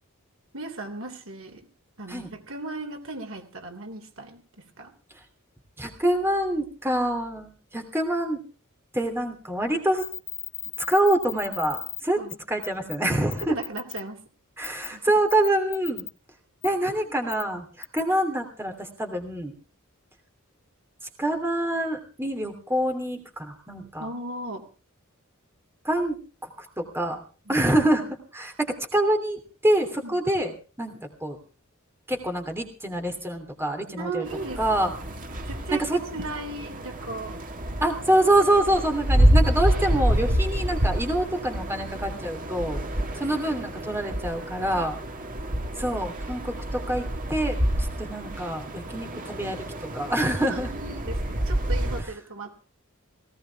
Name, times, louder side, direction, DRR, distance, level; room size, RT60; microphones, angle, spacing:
voice 1, 0.5-1.7 2.0-4.4 4.8-4.9 12.2-12.4 13.4-14.2 14.9-15.0 24.0-24.6 27.5-27.6 30.0-30.2 34.0-35.2 35.5-37.4 50.3-52.6, right 2 dB, 65° right, 5 dB, 3.4 m, -37 dB
voice 2, 5.8-8.4 8.9-10.0 10.9-12.2 12.5-13.6 14.6-16.0 16.6-19.5 21.2-24.1 25.8-26.2 26.4-26.5 26.8-27.2 27.5-28.1 28.3-31.4 32.1-34.2 34.6-34.9 35.7-36.0 37.8-42.8 43.2-45.0 45.8-47.0 47.3-47.6 48.0-49.6 49.9-50.7, right 1 dB, 10° right, 4 dB, 3.0 m, -26 dB
sound 1, 10.0-12.0 12.3-12.4 12.6-13.0 13.3-14.0 14.6-14.9 15.3-16.1 16.6-16.7 17.3-17.4 17.8-18.0, left 10 dB, 60° left, 1.4 m, -35 dB
sound 2, 34.3-52.0, equal, 40° right, 1.9 m, -27 dB
18.5 x 18.0 x 3.6 m, 0.36 s
head